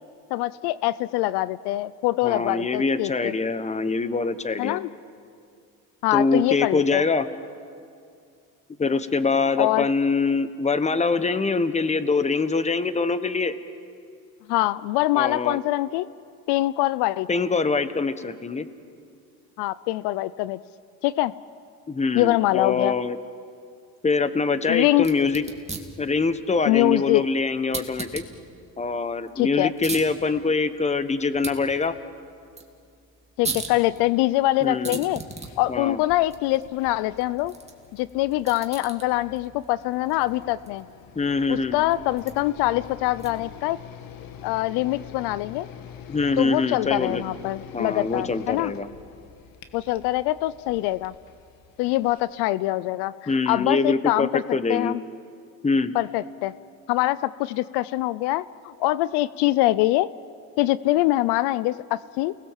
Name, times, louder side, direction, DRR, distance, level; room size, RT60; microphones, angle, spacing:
voice 1, 0.3-3.3 4.6-4.9 6.0-7.0 9.6-9.9 14.5-16.1 16.5-17.3 19.6-20.6 21.0-21.3 22.1-22.9 24.7-25.1 26.7-27.2 29.4-29.7 33.4-35.2 35.6-37.5 37.9-40.8 41.5-43.8 44.4-45.7 46.4-48.7 49.7-51.1 51.8-54.4 54.7-55.0 55.9-56.5 56.9-60.1 60.6-62.3, left 17 dB, 80° left, 18 dB, 0.6 m, -24 dB
voice 2, 2.2-4.8 6.1-7.3 8.8-13.5 15.1-15.6 17.3-18.7 21.9-23.2 24.0-25.4 26.0-28.2 28.8-32.0 34.6-35.0 35.7-36.0 41.1-41.8 46.1-47.2 47.7-48.9 53.3-54.9 55.6-55.9, left 4 dB, 15° left, 12 dB, 1.2 m, -24 dB
sound 1, 24.9-43.6, right 3 dB, 15° right, 2.4 m, -40 dB
sound 2, 35.2-52.2, left 8 dB, 60° left, 1.8 m, -46 dB
29.0 x 20.0 x 7.5 m, 2.3 s
cardioid pair, 110°, 39 cm